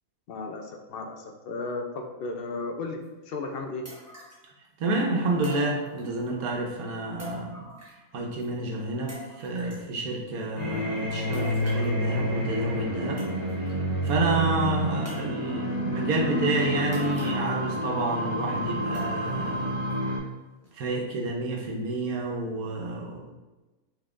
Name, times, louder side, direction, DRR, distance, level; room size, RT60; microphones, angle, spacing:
voice 1, 0.3-3.8, left 3 dB, 60° left, 3 dB, 0.6 m, -35 dB
sound 1, 3.0-3.1 3.8-4.5 5.4-6.3 7.2-8.1 8.4-8.5 9.1-9.9 11.3-12.0 12.8-12.9 13.2-13.7 14.1-14.2 15.0-15.6 16.9-17.7 18.0-18.1 18.9-19.5 19.9-20.0 20.6-20.7, left 1 dB, 10° right, 1.0 m, -44 dB
voice 2, 4.8-7.7 8.1-13.2 14.0-19.7 20.7-23.3, right 2 dB, 85° right, 0 dB, 1.3 m, -29 dB
sound 2, 10.6-20.2, equal, 85° left, 1.8 m, -29 dB
5.3 x 3.7 x 2.5 m, 1.1 s
omnidirectional pair, 1.5 m